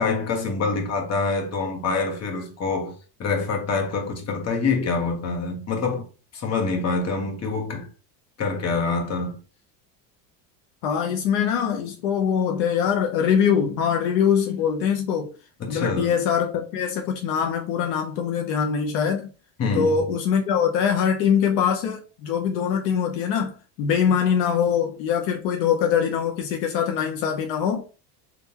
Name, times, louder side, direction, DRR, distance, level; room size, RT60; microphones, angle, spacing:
voice 1, 0.0-2.9 3.2-6.0 6.3-7.9 8.4-9.4 15.6-16.0 19.6-19.9, left 4 dB, 30° left, 1.1 m, -25 dB
voice 2, 10.8-15.3 15.7-19.3 19.7-27.8, left 7 dB, 70° left, 0.8 m, -23 dB
3.6 x 2.5 x 2.8 m
supercardioid pair, 105°, 48 cm